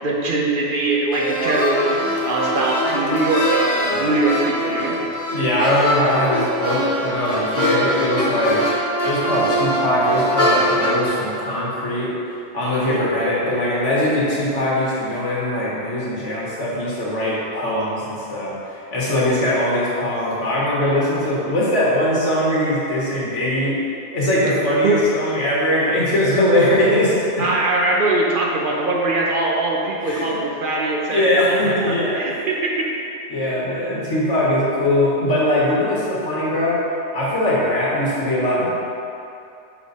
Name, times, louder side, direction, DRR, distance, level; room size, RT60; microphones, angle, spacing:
voice 1, 0.0-5.0 12.8-13.0 19.4-19.6 24.8-25.0 27.4-32.9, right 2 dB, 50° right, -2 dB, 0.9 m, -22 dB
sound 1, 1.1-11.1, equal, 60° left, 1.4 m, -22 dB
voice 2, 5.3-8.7 9.0-12.1 12.5-23.8 24.1-27.4 30.0-30.4 31.1-32.4 33.3-36.8 37.1-38.7, left 1 dB, 85° left, -7 dB, 1.9 m, -21 dB
6.0 x 5.6 x 4.1 m, 2.7 s
omnidirectional pair, 1.2 m